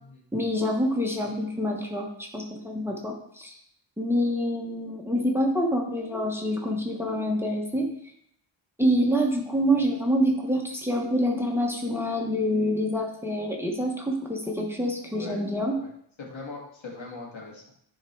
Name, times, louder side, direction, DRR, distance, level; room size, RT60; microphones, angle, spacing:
voice 1, 0.3-3.6 4.0-7.9 8.8-15.8, equal, 5° right, 0 dB, 1.2 m, -26 dB
voice 2, 16.2-17.6, left 3 dB, 75° left, -2 dB, 2.1 m, -40 dB
10.5 x 3.8 x 4.6 m, 0.70 s
wide cardioid pair, 100°, 47 cm